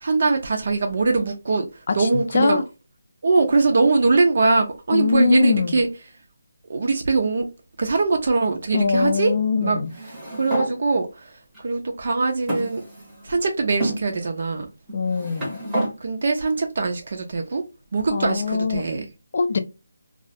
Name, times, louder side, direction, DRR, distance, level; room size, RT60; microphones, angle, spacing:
voice 1, 0.0-2.6 3.2-5.9 6.7-7.5 7.8-9.3 9.6-9.8 10.3-11.3 11.6-12.8 13.2-14.7 16.0-17.6 17.9-19.0, right 3 dB, 45° right, 0.4 m, -22 dB
voice 2, 1.9-2.6 4.9-5.8 8.7-9.9 14.9-15.6 18.1-18.8 19.3-19.6, left 4 dB, 40° left, 0.3 m, -22 dB
sound 1, 9.9-10.7 11.5-11.6 12.5-13.3 13.8-14.0 14.9-15.9, right 1 dB, 5° right, 0.7 m, -28 dB
2.3 x 2.0 x 2.6 m
hypercardioid pair, 175°, 0 cm